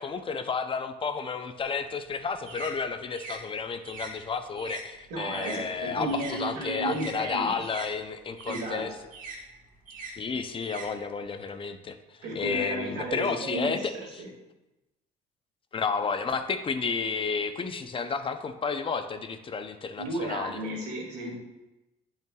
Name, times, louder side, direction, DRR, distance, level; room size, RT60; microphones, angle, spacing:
voice 1, 0.0-8.9 10.2-12.0 12.3-14.2 15.7-20.6, left 5 dB, 30° left, 9 dB, 0.5 m, -31 dB
sound 1, 1.6-6.4 6.7-11.5, right 4 dB, 55° right, 1.5 m, -44 dB
voice 2, 5.1-7.6 8.5-8.8 12.2-14.3 20.0-21.3, right 1 dB, 85° right, -2 dB, 2.1 m, -33 dB
10.5 x 5.6 x 2.3 m, 1.0 s
cardioid pair, 110°, 17 cm